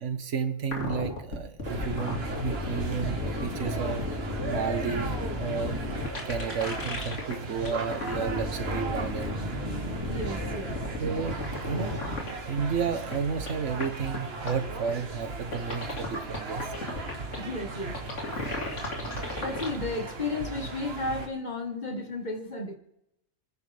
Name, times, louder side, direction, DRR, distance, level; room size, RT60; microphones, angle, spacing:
voice 1, 0.0-4.0 4.5-5.1 5.3-5.8 6.2-9.4 11.0-12.0 12.5-16.7, right 6 dB, 75° right, 9 dB, 1.4 m, -32 dB
sound 1, 0.6-7.3 7.6-12.3 12.6-12.7 13.1-13.2 13.5-13.6 13.8-13.9 14.1-14.2 14.5-14.6 14.9-15.0 15.5-17.4 17.9-19.7, left 2 dB, 80° left, 2.6 m, -33 dB
sound 2, 1.6-21.3, right 3 dB, 55° right, 1.6 m, -37 dB
voice 2, 10.1-10.9 17.4-18.0 19.4-22.8, left 2 dB, 40° left, 4 dB, 1.6 m, -33 dB
26.5 x 10.0 x 3.4 m, 0.82 s
omnidirectional pair, 1.3 m